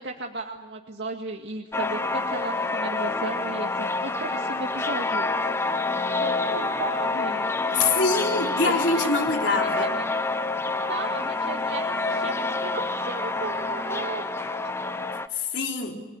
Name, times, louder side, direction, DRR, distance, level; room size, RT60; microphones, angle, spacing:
voice 1, 0.0-5.7 6.2-7.8 8.3-8.9 9.5-10.1 10.8-14.6 15.3-15.5, right 2 dB, 75° right, 1 dB, 2.0 m, -35 dB
sound 1, 1.7-15.3, left 3 dB, 15° left, 0.9 m, -27 dB
voice 2, 7.7-9.9 15.3-16.0, left 3 dB, 80° left, 2 dB, 3.9 m, -25 dB
30.0 x 20.5 x 8.3 m, 1.2 s
head